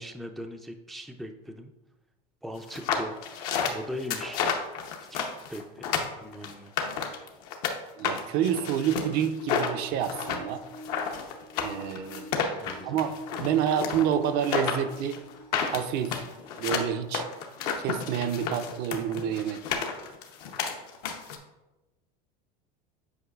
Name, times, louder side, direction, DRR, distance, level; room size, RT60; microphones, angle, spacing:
voice 1, 0.0-1.7 2.4-3.3 3.6-4.4 5.1-5.2 5.5-5.8 6.2-6.7 12.6-13.0, equal, ahead, 4 dB, 0.3 m, -39 dB
sound 1, 2.7-7.7 8.0-21.4, left 6 dB, 75° left, 0.9 m, -31 dB
voice 2, 8.0-10.6 11.6-12.6 12.8-13.1 13.4-15.2 15.7-16.2 16.6-17.3 17.8-20.0, right 9 dB, 55° right, 9 dB, 0.5 m, -28 dB
sound 2, 8.9-16.5 17.2-17.3 18.3-18.4, right 1 dB, 85° right, 2.0 m, -47 dB
8.1 x 4.9 x 2.4 m, 1.0 s
supercardioid pair, 125°, 20 cm